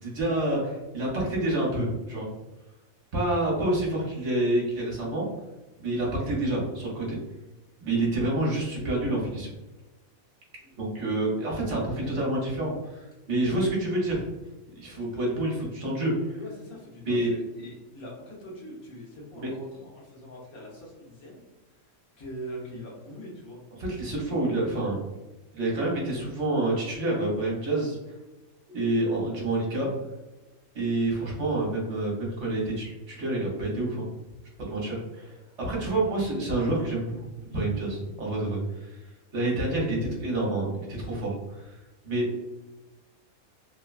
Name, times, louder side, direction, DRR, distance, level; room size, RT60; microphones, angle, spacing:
voice 1, 0.0-2.3 3.1-5.3 5.8-7.2 7.8-9.5 10.8-14.2 14.8-16.4 17.1-17.3 19.4-19.5 23.8-25.0 25.5-28.0 28.7-29.9 30.7-34.1 34.7-39.0 39.3-41.8 42.0-42.3, right 2 dB, 60° right, -4 dB, 1.0 m, -28 dB
voice 2, 16.1-21.4 21.7-23.6, equal, 80° left, -3 dB, 1.4 m, -43 dB
3.1 x 2.1 x 2.3 m, 1.1 s
omnidirectional pair, 1.5 m